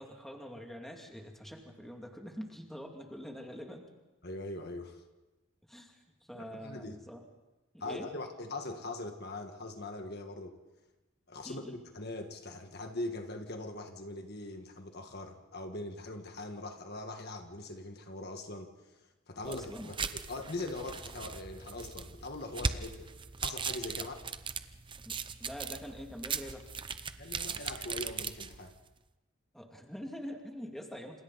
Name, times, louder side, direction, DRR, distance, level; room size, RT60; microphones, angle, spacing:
voice 1, 0.0-3.8 5.7-7.2 7.8-8.1 11.4-11.8 19.5-19.9 24.0-24.1 25.0-26.7 29.5-31.2, equal, ahead, 1 dB, 2.4 m, -45 dB
voice 2, 4.2-5.0 6.3-7.0 7.8-10.6 11.3-23.1 23.4-24.1 27.2-28.7, left 2 dB, 50° left, 5 dB, 1.6 m, -41 dB
sound 1, 19.4-28.8, right 5 dB, 25° right, 0.8 m, -39 dB
28.5 x 27.5 x 4.1 m, 1.1 s
head